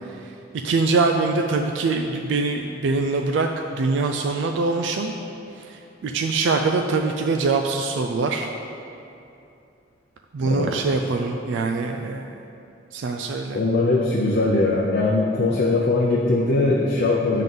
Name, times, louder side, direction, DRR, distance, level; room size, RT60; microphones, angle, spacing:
voice 1, 0.6-3.5 3.8-5.1 5.6-8.5 10.3-12.2 12.9-13.6, right 3 dB, 75° right, 3 dB, 0.3 m, -23 dB
voice 2, 10.4-11.1 13.5-17.4, left 2 dB, 55° left, -3 dB, 0.6 m, -21 dB
7.5 x 3.7 x 5.4 m, 2.7 s
head